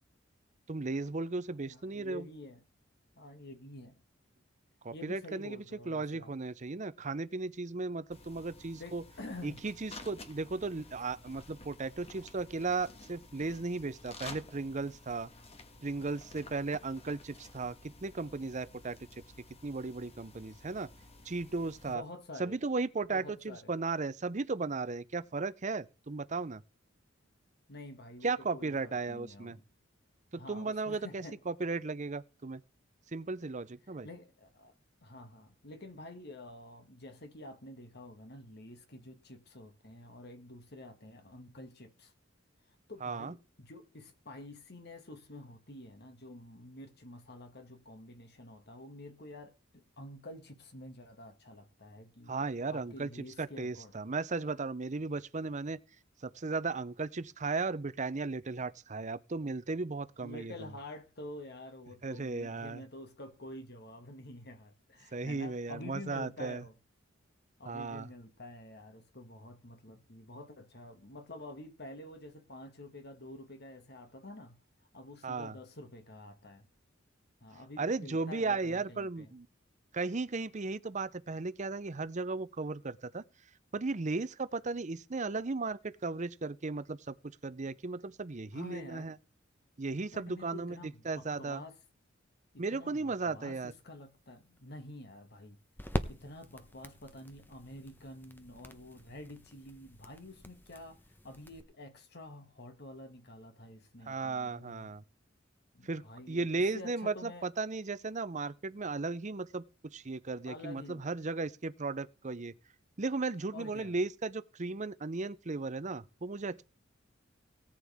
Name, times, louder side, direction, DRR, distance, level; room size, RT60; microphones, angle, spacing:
voice 1, 0.7-2.3 4.8-9.0 9.4-15.3 15.8-19.0 19.6-20.9 21.2-22.0 22.4-26.6 28.2-29.6 30.3-32.6 33.1-34.1 43.0-43.3 52.3-53.1 53.4-55.8 56.2-60.5 62.0-62.8 65.1-66.6 67.7-68.1 75.2-75.5 77.8-79.5 79.9-83.2 83.7-89.1 89.8-91.6 92.6-93.7 104.1-105.0 105.8-112.5 113.0-116.6, right 3 dB, 35° right, 0.7 m, -36 dB
voice 2, 1.7-2.6 3.2-4.0 4.9-6.3 8.7-9.6 21.9-22.6 23.1-23.7 27.7-29.6 30.3-31.4 34.0-34.7 35.0-42.1 42.9-52.4 52.7-54.0 60.2-66.8 67.6-74.6 74.9-76.7 77.4-79.3 88.5-89.1 90.1-91.8 92.5-95.6 96.1-104.9 105.7-107.5 110.5-111.0 113.5-114.0, left 1 dB, 55° left, 2.1 m, -48 dB
sound 1, 8.1-21.9, left 2 dB, 30° left, 1.5 m, -52 dB
sound 2, 93.7-101.6, equal, 10° left, 0.9 m, -43 dB
18.0 x 8.9 x 3.6 m
head